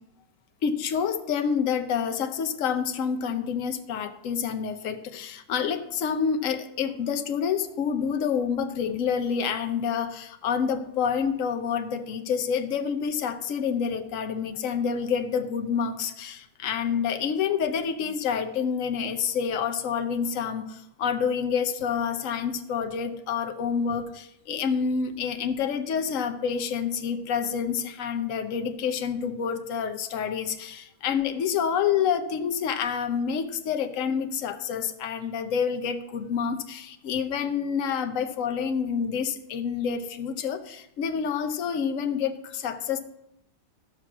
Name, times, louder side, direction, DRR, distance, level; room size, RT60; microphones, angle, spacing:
voice 1, 0.6-43.0, left 7 dB, 80° left, 8 dB, 0.7 m, -28 dB
13.0 x 6.0 x 6.0 m, 0.81 s
omnidirectional pair, 2.3 m